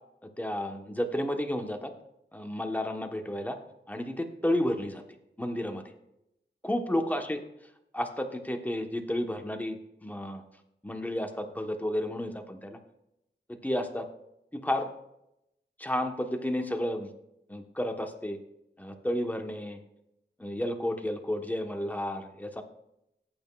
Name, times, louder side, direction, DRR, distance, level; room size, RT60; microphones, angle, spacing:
voice 1, 0.4-1.9 2.3-3.6 3.9-5.0 5.4-5.9 6.6-7.4 7.9-10.4 10.8-12.8 13.5-14.1 14.5-14.9 15.8-17.1 17.5-18.4 18.8-19.8 20.4-22.6, left 1 dB, 10° left, 4 dB, 1.2 m, -32 dB
18.0 x 8.9 x 2.4 m, 0.83 s
wide cardioid pair, 105°, 19 cm